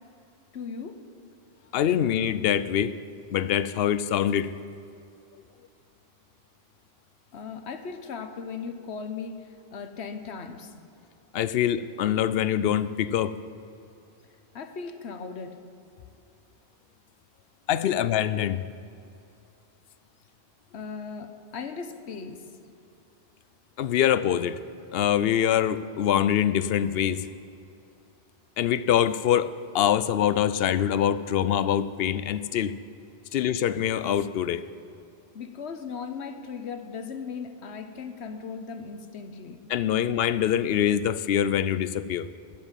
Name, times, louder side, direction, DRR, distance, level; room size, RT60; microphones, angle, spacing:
voice 1, 0.5-1.0 7.3-10.8 14.5-15.6 20.7-22.5 35.3-39.7, left 5 dB, 90° left, 8 dB, 1.2 m, -37 dB
voice 2, 1.7-2.9 3.3-4.5 11.3-13.4 17.7-18.6 23.8-24.6 24.9-27.3 28.6-32.8 33.3-34.6 39.7-42.3, left 10 dB, 70° left, 15 dB, 0.8 m, -24 dB
13.0 x 7.5 x 8.9 m, 2.6 s
omnidirectional pair, 1.1 m